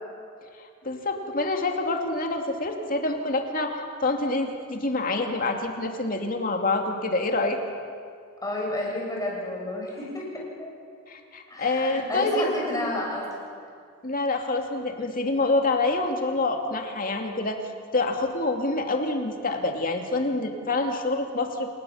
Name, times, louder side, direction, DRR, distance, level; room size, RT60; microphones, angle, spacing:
voice 1, 0.6-7.6 11.1-12.5 14.0-17.6 17.9-21.7, left 2 dB, 45° left, 4 dB, 2.4 m, -27 dB
voice 2, 8.4-10.7 11.5-13.3, left 1 dB, 15° left, -3 dB, 6.4 m, -31 dB
27.5 x 19.0 x 7.1 m, 2.2 s
head